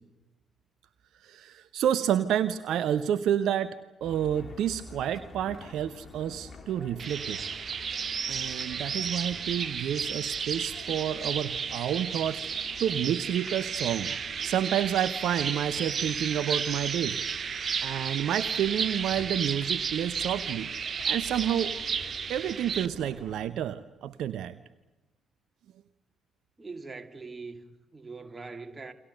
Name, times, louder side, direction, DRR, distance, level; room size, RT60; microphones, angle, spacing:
voice 1, 1.2-7.4 8.3-12.5 12.8-14.2 14.4-17.2 17.8-20.7 21.1-21.7 22.3-24.6, right 10 dB, 60° right, 0.8 m, -29 dB
sound 1, 4.0-23.5, left 3 dB, 40° left, 3.5 m, -48 dB
sound 2, 7.0-22.9, right 6 dB, 45° right, 1.0 m, -33 dB
voice 2, 26.6-28.9, right 4 dB, 25° right, 2.6 m, -42 dB
30.0 x 23.0 x 6.8 m
figure-of-eight pair, 45°, 0 cm